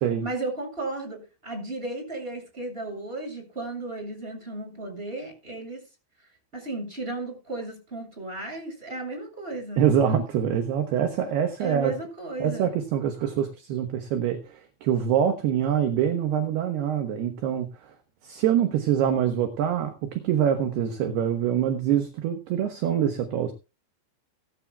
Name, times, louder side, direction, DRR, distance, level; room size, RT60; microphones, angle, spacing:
voice 1, 0.2-5.8 6.5-9.8 11.6-12.7, right 2 dB, 10° right, 3 dB, 7.0 m, -34 dB
voice 2, 9.8-11.9 12.4-17.9 18.2-23.5, right 9 dB, 70° right, 6 dB, 2.9 m, -25 dB
18.5 x 13.5 x 2.3 m, 0.31 s
omnidirectional pair, 5.6 m